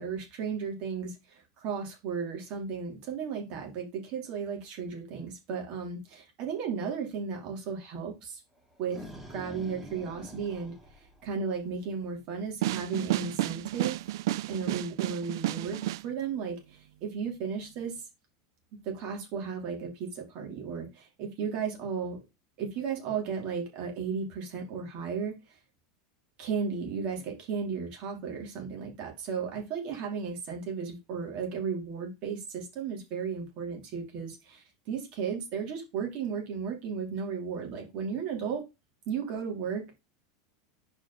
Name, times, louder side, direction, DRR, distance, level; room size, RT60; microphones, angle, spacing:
voice 1, 0.0-8.4 8.8-9.0 9.3-14.0 14.5-18.0 18.8-22.2 22.6-25.4 26.4-38.6 39.1-40.0, right 6 dB, 50° right, 1 dB, 3.0 m, -35 dB
sound 1, 8.6-11.8, equal, 5° right, 1.6 m, -46 dB
sound 2, 12.6-16.0, right 15 dB, 75° right, 0.4 m, -31 dB
5.0 x 4.9 x 5.5 m, 0.24 s
supercardioid pair, 120°, 2 cm